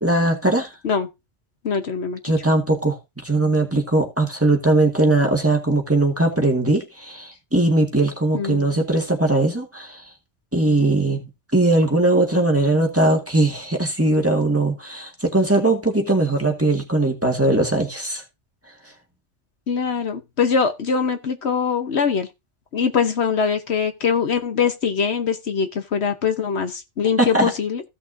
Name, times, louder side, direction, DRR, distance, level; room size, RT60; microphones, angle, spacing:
voice 1, 0.0-0.7 2.2-3.0 3.2-10.0 10.5-11.2 11.5-18.2 27.2-27.5, right 2 dB, 10° right, 1.8 m, -20 dB
voice 2, 1.6-2.2 8.3-8.8 19.7-22.3 22.7-27.8, left 6 dB, 65° left, 1.2 m, -22 dB
15.5 x 5.9 x 2.7 m
omnidirectional pair, 1.2 m